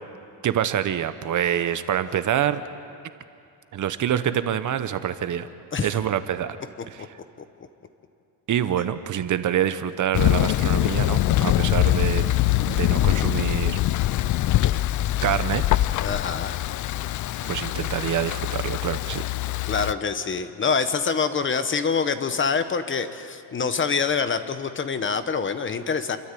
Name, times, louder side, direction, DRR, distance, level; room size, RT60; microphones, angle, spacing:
voice 1, 0.4-2.6 3.7-5.5 5.8-6.6 6.9-7.1 8.5-12.3 12.7-13.8 15.2-15.6 17.4-19.2, right 10 dB, 45° right, 12 dB, 0.9 m, -26 dB
Thunder, 10.1-19.9, left 14 dB, 45° left, 0.4 m, -23 dB
voice 2, 16.0-16.6 19.7-26.2, left 5 dB, 25° left, 10 dB, 1.0 m, -25 dB
28.5 x 13.0 x 8.4 m, 2.5 s
cardioid pair, 135°, 44 cm